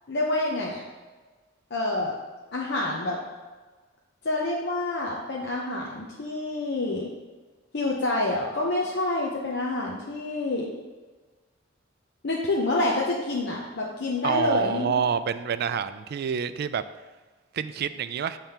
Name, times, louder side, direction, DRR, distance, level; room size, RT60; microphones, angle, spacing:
voice 1, 0.1-0.8 1.7-2.1 2.5-3.2 4.2-7.1 7.7-10.7 12.2-14.9, left 2 dB, 60° left, -3 dB, 0.8 m, -27 dB
voice 2, 14.2-16.8 17.5-18.4, right 7 dB, 55° right, 12 dB, 0.3 m, -27 dB
7.4 x 3.4 x 5.7 m, 1.3 s
head